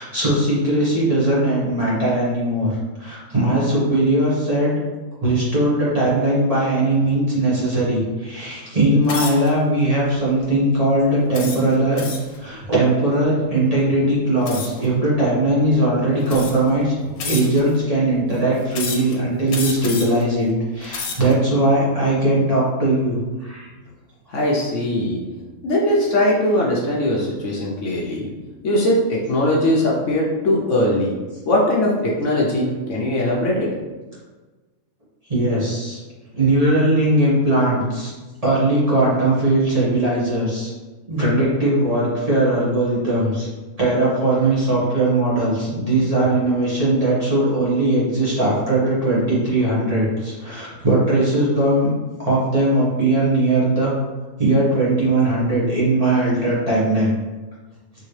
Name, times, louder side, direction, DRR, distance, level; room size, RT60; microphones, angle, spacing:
voice 1, 0.0-2.7 3.0-4.8 5.2-12.0 12.4-16.9 17.2-23.7 35.3-36.0 36.3-38.1 38.4-40.7 41.1-43.5 43.8-51.9 52.2-53.9 54.4-57.1, right 1 dB, 25° right, -8 dB, 1.3 m, -19 dB
sound 1, 9.1-9.5 10.2-10.4 11.3-12.4 14.5-14.9 15.7-15.8 16.3-16.7 17.2-17.8 18.7-19.2 19.5-20.2 20.7-21.3, left 4 dB, 85° left, 1.3 m, -30 dB
voice 2, 24.3-25.2 25.6-28.3 28.6-31.1 31.4-33.7, left 1 dB, 60° left, -3 dB, 1.1 m, -20 dB
4.9 x 3.1 x 3.2 m, 1.2 s
omnidirectional pair, 1.5 m